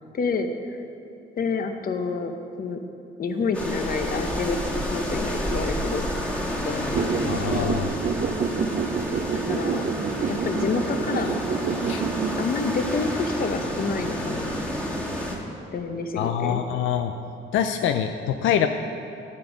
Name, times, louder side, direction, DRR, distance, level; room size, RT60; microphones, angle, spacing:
voice 1, 0.1-0.8 1.4-2.8 3.2-6.0 6.6-7.8 9.3-9.9 10.3-11.3 12.4-14.5 15.7-16.6, left 4 dB, 45° left, 6 dB, 0.9 m, -28 dB
sound 1, 3.2-8.4 8.6-8.9, right 1 dB, 70° right, 1.5 m, -45 dB
sound 2, 3.5-15.4, equal, 5° left, 1.6 m, -30 dB
sound 3, 6.9-12.4, right 6 dB, 40° right, 0.5 m, -28 dB
voice 2, 7.3-7.9 11.8-12.0 16.2-17.1 17.5-18.7, left 9 dB, 80° left, 7 dB, 0.4 m, -25 dB
9.0 x 7.5 x 5.0 m, 2.7 s
cardioid pair, 90°, 20 cm